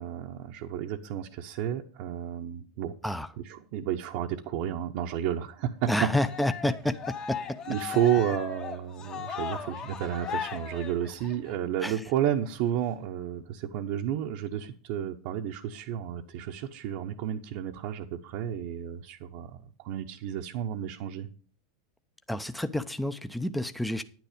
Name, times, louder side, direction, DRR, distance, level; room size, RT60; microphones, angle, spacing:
voice 1, 0.0-2.9 3.4-6.1 7.7-21.3, right 10 dB, 55° right, 0.8 m, -31 dB
voice 2, 5.9-7.4 11.8-12.0 22.3-24.0, left 1 dB, ahead, 0.6 m, -29 dB
Cheering, 6.0-11.5, left 8 dB, 30° left, 1.2 m, -37 dB
10.0 x 9.2 x 5.0 m
supercardioid pair, 125°, 3 cm